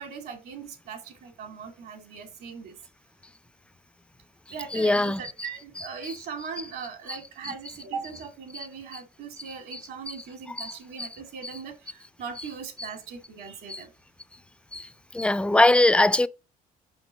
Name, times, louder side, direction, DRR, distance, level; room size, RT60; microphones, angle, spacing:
voice 1, 0.0-2.8 4.5-13.9, right 6 dB, 70° right, 2.4 m, -39 dB
voice 2, 4.7-5.2 10.6-10.7 11.0-11.1 13.7-13.8 14.7-14.9 15.1-16.3, left 2 dB, 5° left, 0.3 m, -21 dB
5.3 x 5.2 x 6.3 m
cardioid pair, 110°, 17 cm